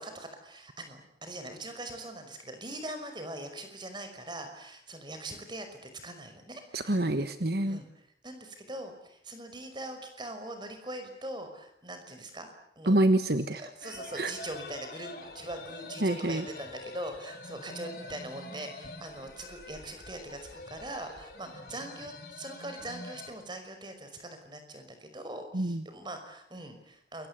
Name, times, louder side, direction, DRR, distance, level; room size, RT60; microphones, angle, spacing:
voice 1, 0.0-7.0 7.7-12.5 12.8-13.0 13.3-27.3, right 1 dB, 25° right, 7 dB, 5.5 m, -42 dB
voice 2, 6.7-7.8 12.9-14.3 16.0-16.4 25.5-25.8, right 1 dB, 60° right, 9 dB, 1.4 m, -27 dB
sound 1, 13.8-23.3, left 2 dB, 55° left, 7.1 m, -45 dB
28.0 x 23.5 x 8.3 m, 0.72 s
head